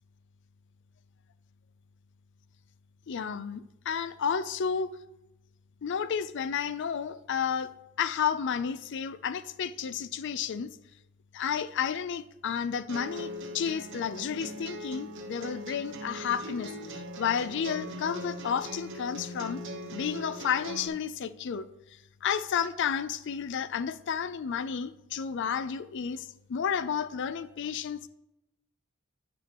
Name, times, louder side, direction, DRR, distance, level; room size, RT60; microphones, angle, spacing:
voice 1, 3.1-4.9 5.8-7.7 8.0-10.7 11.3-19.6 19.9-21.7 22.2-28.1, left 7 dB, 55° left, 14 dB, 0.4 m, -31 dB
sound 1, 12.9-20.9, equal, 55° right, 1.1 m, -40 dB
10.5 x 6.1 x 3.0 m, 0.91 s
head